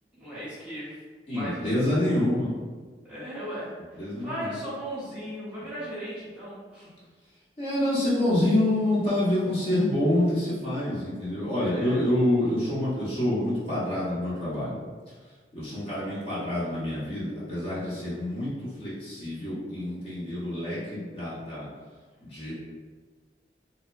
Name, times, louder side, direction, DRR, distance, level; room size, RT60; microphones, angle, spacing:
voice 1, 0.2-1.0 1.3-2.1 3.0-6.9 11.6-12.1, equal, 5° right, -11 dB, 0.9 m, -37 dB
voice 2, 1.3-2.5 4.0-4.6 7.6-14.8 15.5-21.7 22.2-22.5, left 1 dB, 35° left, -10 dB, 0.8 m, -27 dB
2.9 x 2.1 x 2.5 m, 1.5 s
head